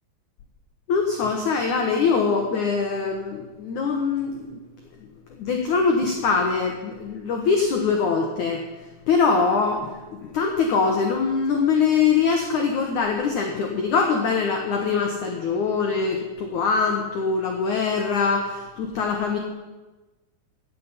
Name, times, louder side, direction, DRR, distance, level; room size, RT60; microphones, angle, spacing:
voice 1, 0.9-4.6 5.3-8.6 9.1-19.4, left 5 dB, 85° left, 3 dB, 1.7 m, -23 dB
15.5 x 7.6 x 9.8 m, 1.2 s
omnidirectional pair, 5.6 m